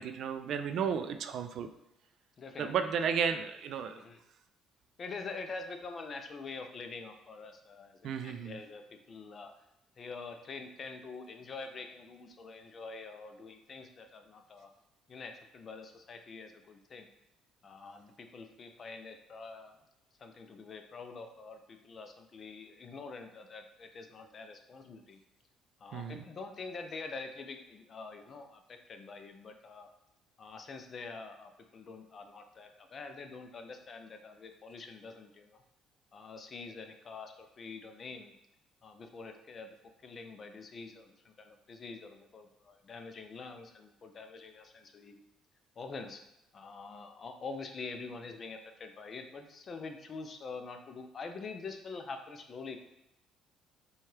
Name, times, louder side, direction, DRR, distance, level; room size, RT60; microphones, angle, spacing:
voice 1, 0.0-1.7 2.6-4.0 8.0-8.6 25.9-26.2, right 7 dB, 60° right, 8 dB, 0.3 m, -33 dB
voice 2, 2.4-2.9 3.9-4.2 5.0-9.5 10.0-14.7 15.1-17.1 17.6-19.7 20.2-25.2 25.8-29.9 30.4-35.6 36.1-38.3 38.8-39.8 40.0-45.2 45.8-46.2 46.5-52.8, left 4 dB, 40° left, 6 dB, 0.5 m, -45 dB
4.4 x 2.3 x 3.2 m, 0.87 s
cardioid pair, 110°, 0 cm